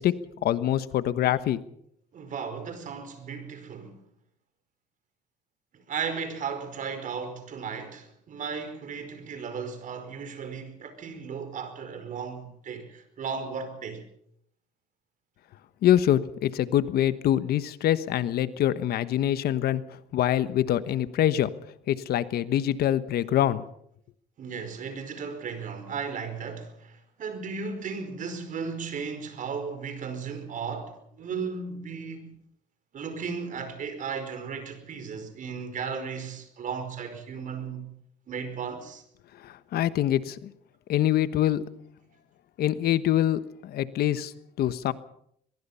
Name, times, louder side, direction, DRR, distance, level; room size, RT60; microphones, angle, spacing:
voice 1, 0.0-1.6 15.8-19.8 20.1-21.5 21.9-23.6 39.4-40.5 40.9-41.8 42.6-44.9, left 12 dB, 65° left, 1.2 m, -25 dB
voice 2, 2.1-4.0 5.7-14.0 24.4-32.4 32.9-37.9 38.3-39.0, right 5 dB, 50° right, 5.0 m, -35 dB
23.0 x 22.0 x 5.7 m
cardioid pair, 110°, 17 cm